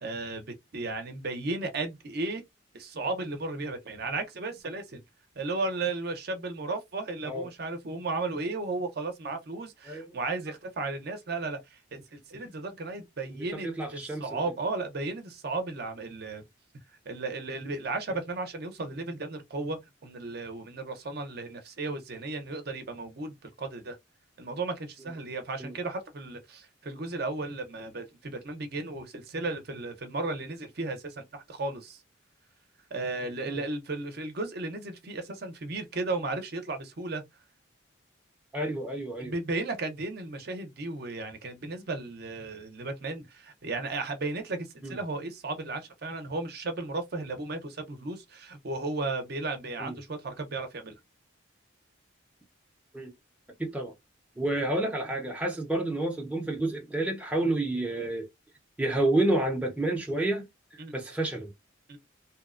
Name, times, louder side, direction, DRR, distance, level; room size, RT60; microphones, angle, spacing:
voice 1, 0.0-2.4 2.7-5.0 5.4-16.4 17.1-24.0 24.4-32.0 32.9-37.2 39.2-51.0 60.8-60.9 61.9-62.0, right 3 dB, 50° right, 0.6 m, -35 dB
voice 2, 9.9-10.2 13.6-14.2 25.6-25.7 33.4-33.6 38.5-39.3 44.8-45.0 49.8-49.9 52.9-53.1 53.6-53.9 54.4-58.3 58.8-60.5 60.9-61.5, right 1 dB, 5° right, 0.5 m, -29 dB
2.8 x 2.0 x 2.4 m
head